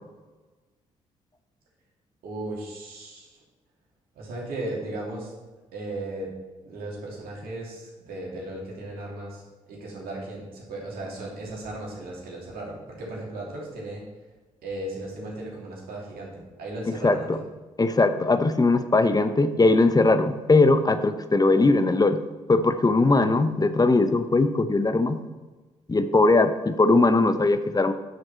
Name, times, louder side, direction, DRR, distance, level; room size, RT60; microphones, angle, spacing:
voice 1, 2.2-3.3 4.1-5.3 5.7-6.3 6.6-14.0 14.6-17.3, right 2 dB, 65° right, -3 dB, 2.9 m, -36 dB
voice 2, 17.0-17.4 17.8-22.2 22.5-25.2 25.9-27.9, left 3 dB, 25° left, 10 dB, 0.9 m, -20 dB
10.5 x 6.5 x 4.3 m, 1.2 s
hypercardioid pair, 40°, 16 cm